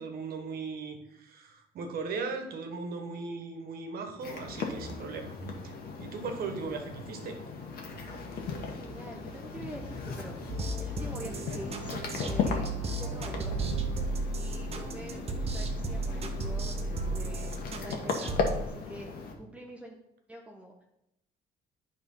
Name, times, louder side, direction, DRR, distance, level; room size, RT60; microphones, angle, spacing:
voice 1, 0.0-5.3 5.6-7.4, right 4 dB, 60° right, 5 dB, 1.3 m, -38 dB
sound 1, 4.2-19.3, left 5 dB, 65° left, 1.4 m, -37 dB
voice 2, 8.5-13.6 14.3-20.0 20.3-20.8, equal, 10° right, -1 dB, 0.8 m, -46 dB
sound 2, 10.5-18.6, right 2 dB, 40° right, 1.0 m, -34 dB
9.4 x 3.6 x 5.6 m, 0.84 s
cardioid pair, 110°, 17 cm